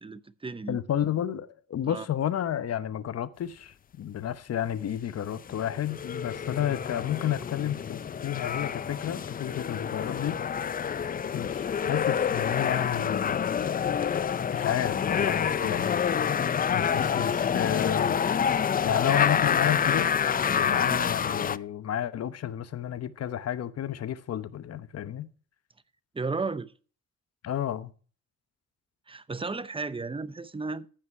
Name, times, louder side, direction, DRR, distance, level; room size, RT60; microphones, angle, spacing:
voice 1, 0.0-0.8 1.8-2.1 20.9-21.1 26.1-26.7 29.1-30.9, right 3 dB, 20° right, 0.7 m, -34 dB
voice 2, 0.7-10.4 11.3-13.7 14.5-16.1 16.7-18.2 18.8-20.1 20.5-25.3 27.4-27.9, left 10 dB, 55° left, 1.0 m, -31 dB
sound 1, 5.5-21.6, left 7 dB, 30° left, 0.4 m, -27 dB
15.0 x 5.8 x 4.6 m
cardioid pair, 90°, 30 cm